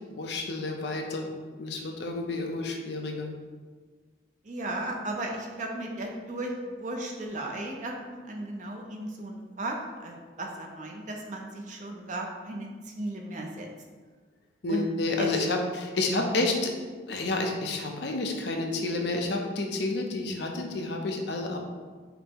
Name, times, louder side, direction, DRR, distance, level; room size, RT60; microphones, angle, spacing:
voice 1, 0.2-1.3 1.6-3.3 14.6-16.7 17.1-21.6, left 2 dB, 65° left, 2 dB, 0.6 m, -30 dB
voice 2, 4.5-12.7 13.0-13.7 14.7-14.9 15.2-15.3, right 1 dB, 40° right, 1 dB, 0.5 m, -35 dB
5.3 x 2.1 x 4.4 m, 1.5 s
head